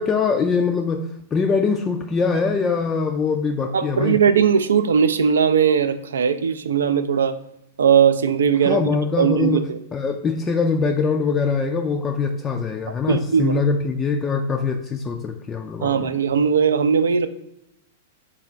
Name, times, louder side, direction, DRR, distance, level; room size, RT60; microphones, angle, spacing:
voice 1, 0.0-4.2 8.6-16.1, left 5 dB, 20° left, 4 dB, 0.3 m, -23 dB
voice 2, 3.7-7.4 7.8-8.8 9.2-9.8 13.1-13.6 15.8-17.3, right 7 dB, 70° right, 10 dB, 0.3 m, -19 dB
3.7 x 2.3 x 3.1 m, 0.83 s
figure-of-eight pair, 100°, 0 cm